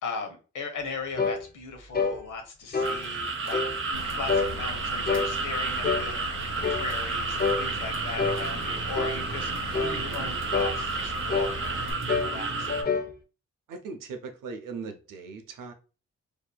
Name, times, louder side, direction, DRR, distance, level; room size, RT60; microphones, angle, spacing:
voice 1, 0.0-9.5 9.8-11.8 12.2-12.9, left 4 dB, 75° left, 0.7 m, -38 dB
sound 1, 1.2-1.4 1.9-2.2 2.7-3.0 3.5-3.8 4.3-4.5 5.1-5.3 5.8-6.1 6.6-6.9 7.4-7.6 8.2-8.4 9.0-9.2 9.7-10.0 10.5-10.8 11.3-11.6 12.1-12.4 12.7-13.1, left 5 dB, 30° left, 0.5 m, -27 dB
sound 2, 2.8-12.8, right 3 dB, 40° right, 0.5 m, -31 dB
Vehicle / Engine, 3.9-11.9, left 1 dB, 60° left, 1.4 m, -39 dB
voice 2, 13.7-15.7, right 4 dB, 85° right, 0.5 m, -39 dB
2.6 x 2.4 x 2.2 m
cardioid pair, 55°, 31 cm